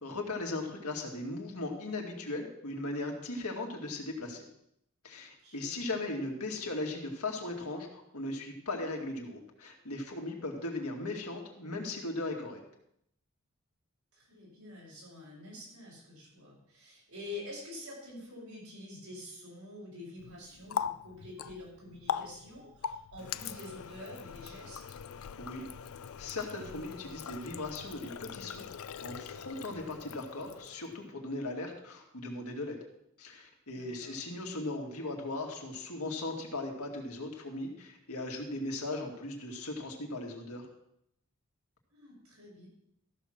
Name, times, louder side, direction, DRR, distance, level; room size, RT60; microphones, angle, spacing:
voice 1, 0.0-4.4 5.0-12.6 25.4-25.6 26.2-32.8 33.2-40.7, left 2 dB, 90° left, 1 dB, 2.2 m, -38 dB
voice 2, 5.4-6.0 14.1-24.8 33.7-34.2 41.9-42.7, left 2 dB, 75° right, -4 dB, 6.0 m, -47 dB
Water tap faucet, 20.2-31.0, left 7 dB, 70° left, 0.4 m, -41 dB
14.0 x 6.5 x 6.0 m, 0.74 s
head